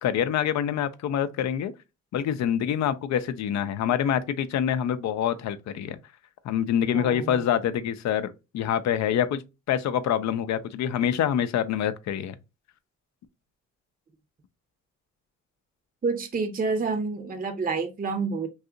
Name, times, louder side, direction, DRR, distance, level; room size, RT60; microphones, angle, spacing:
voice 1, 0.0-1.7 2.1-6.0 6.4-9.4 9.7-12.3, left 9 dB, 60° left, 0.5 m, -26 dB
voice 2, 6.9-7.4 16.0-18.5, right 4 dB, 25° right, 0.6 m, -28 dB
2.7 x 2.4 x 3.7 m
cardioid pair, 70°, 32 cm